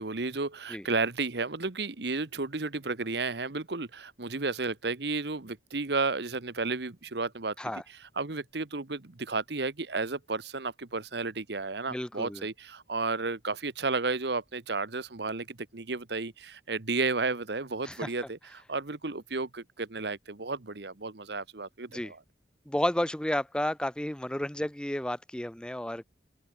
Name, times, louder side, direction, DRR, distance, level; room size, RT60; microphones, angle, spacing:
voice 1, 0.0-7.5 8.2-22.2, right 3 dB, 65° right, 1.2 m, -32 dB
voice 2, 11.9-12.5 17.8-18.1 21.9-22.1 22.7-26.0, left 1 dB, 5° left, 0.5 m, -32 dB
open air
head